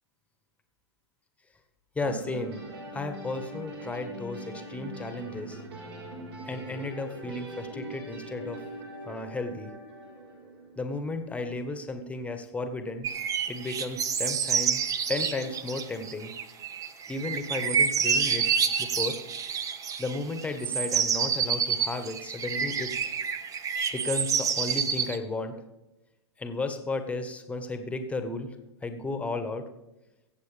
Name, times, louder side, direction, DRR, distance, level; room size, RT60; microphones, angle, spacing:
voice 1, 1.9-2.6 2.9-5.6 6.4-8.6 9.0-9.7 10.8-13.1 13.4-14.8 15.1-16.3 17.1-18.5 18.8-19.2 20.0-22.9 23.9-25.5 26.4-28.5 28.8-29.6, left 3 dB, 10° left, 7 dB, 1.4 m, -34 dB
sound 1, 2.0-11.0, right 1 dB, 60° right, 5.5 m, -42 dB
sound 2, 13.0-25.2, right 6 dB, 25° right, 0.9 m, -28 dB
23.5 x 8.0 x 3.5 m, 0.98 s
figure-of-eight pair, 105°, 14 cm